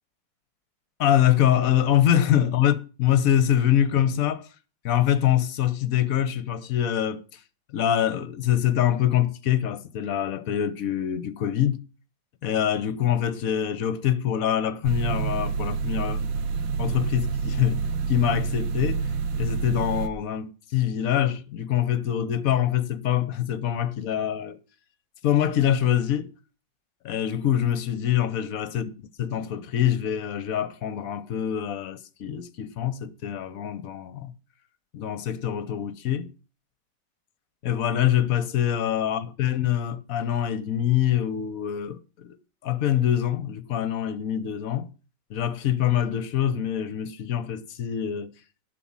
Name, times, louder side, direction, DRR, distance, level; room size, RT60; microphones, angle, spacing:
voice 1, 1.0-4.5 4.8-7.4 7.7-11.8 12.4-16.3 16.8-19.1 19.4-24.6 25.2-26.3 27.0-28.8 29.2-34.3 34.9-36.3 37.6-42.4 42.6-44.9 45.3-48.3, left 10 dB, 55° left, 1.1 m, -24 dB
sound 1, 14.8-20.1, right 5 dB, 90° right, 1.5 m, -28 dB
11.5 x 5.0 x 7.2 m
omnidirectional pair, 2.0 m